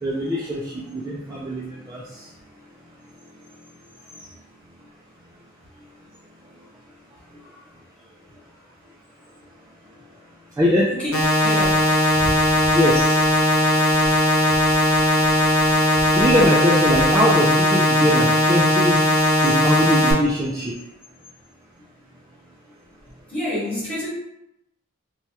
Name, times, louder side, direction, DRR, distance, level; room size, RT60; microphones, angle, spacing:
voice 1, 0.0-2.3 10.6-10.9 12.2-12.3 12.7-13.2 16.1-19.0 19.4-20.7, equal, 15° right, -6 dB, 0.3 m, -22 dB
voice 2, 7.3-7.7 10.9-11.1 11.4-11.9 23.3-24.1, left 1 dB, 5° left, -9 dB, 1.2 m, -29 dB
sound 1, 11.1-20.1, left 1 dB, 85° left, 0.8 m, -18 dB
3.2 x 2.2 x 2.7 m, 0.85 s
head